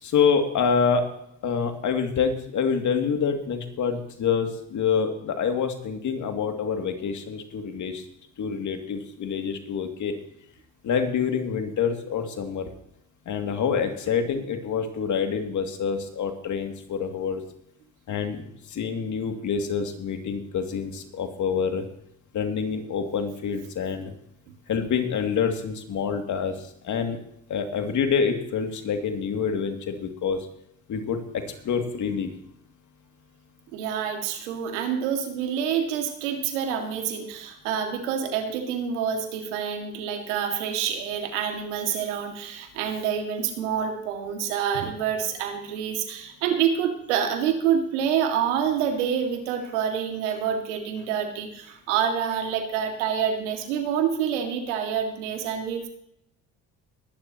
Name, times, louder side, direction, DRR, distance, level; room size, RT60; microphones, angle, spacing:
voice 1, 0.0-1.1 1.4-8.1 8.4-10.1 10.8-12.7 13.3-17.4 18.1-21.9 22.3-24.1 24.7-27.2 27.5-30.5 30.9-32.3, left 6 dB, 60° left, 5 dB, 2.4 m, -27 dB
voice 2, 33.7-55.9, right 8 dB, 90° right, 4 dB, 2.1 m, -27 dB
21.0 x 11.5 x 2.9 m, 0.73 s
hypercardioid pair, 60°, 34 cm